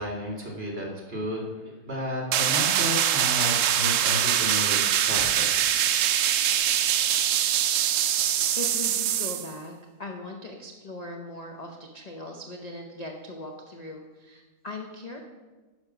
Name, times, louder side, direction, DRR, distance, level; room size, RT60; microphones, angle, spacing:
voice 1, 0.0-1.5 1.8-5.5, left 1 dB, 40° right, -1 dB, 2.1 m, -32 dB
sound 1, 2.3-9.5, right 10 dB, 70° right, 0.8 m, -23 dB
voice 2, 7.8-8.2 8.6-9.7 10.0-15.2, left 2 dB, 35° left, 2 dB, 0.6 m, -39 dB
10.5 x 5.7 x 6.0 m, 1.3 s
omnidirectional pair, 1.7 m